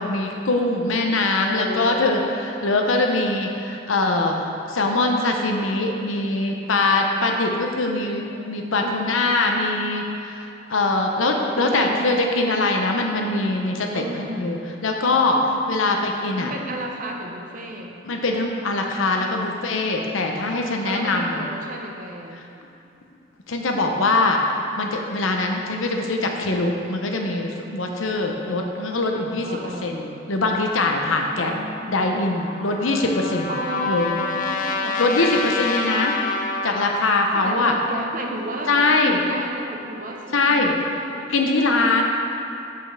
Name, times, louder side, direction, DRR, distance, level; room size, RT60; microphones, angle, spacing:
voice 1, 0.0-4.3 4.7-15.4 15.7-16.5 18.0-21.4 23.5-24.4 24.8-29.5 29.8-31.5 31.9-33.5 33.9-34.1 35.0-36.2 36.6-37.7 38.7-39.2 40.3-40.8 41.3-42.0, left 2 dB, 90° left, 2 dB, 0.8 m, -22 dB
voice 2, 1.5-2.3 8.8-9.3 11.2-12.1 13.9-14.6 16.4-17.9 20.8-22.4 29.4-30.0 31.3-31.9 33.5-35.2 37.3-41.3, equal, 45° right, 1 dB, 0.8 m, -32 dB
Trumpet, 32.4-37.1, left 3 dB, 40° left, 0.6 m, -27 dB
5.6 x 5.3 x 6.4 m, 2.6 s
head